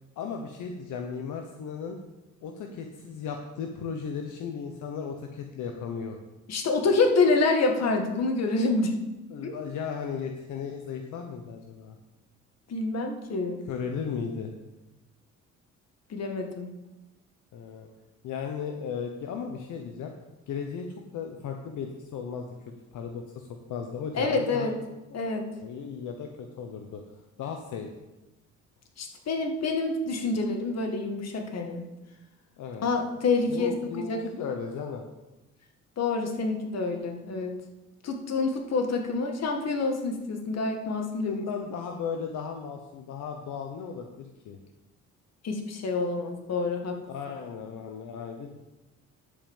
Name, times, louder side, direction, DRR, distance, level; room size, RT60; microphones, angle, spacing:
voice 1, 0.2-2.0 2.4-6.2 9.3-11.9 13.7-14.5 17.5-17.9 18.2-20.1 20.5-20.9 21.1-22.5 22.9-24.7 25.6-27.0 27.4-27.9 32.6-32.9 33.5-35.1 41.2-44.6 47.1-48.6, left 6 dB, 80° left, 3 dB, 1.0 m, -36 dB
voice 2, 6.5-8.9 9.4-9.6 12.7-13.6 16.1-16.7 24.2-24.8 25.1-25.5 29.0-31.8 32.8-34.2 36.0-37.5 38.0-41.4 45.4-47.0, left 3 dB, 60° left, 4 dB, 1.9 m, -27 dB
10.5 x 5.4 x 7.2 m, 1.0 s
cardioid pair, 90°, 30 cm